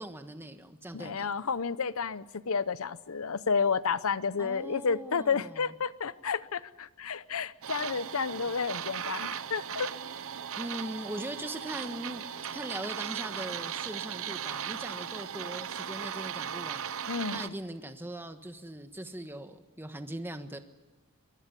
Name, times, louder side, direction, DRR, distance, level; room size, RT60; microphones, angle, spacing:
voice 1, 0.0-1.3 4.4-5.7 10.6-16.9 17.3-20.6, right 1 dB, 10° right, 8 dB, 1.3 m, -40 dB
voice 2, 0.9-9.9 17.1-17.5, left 5 dB, 65° left, 17 dB, 0.8 m, -31 dB
sound 1, 7.6-17.5, right 8 dB, 65° right, 0.8 m, -37 dB
24.0 x 19.5 x 8.4 m, 1.2 s
head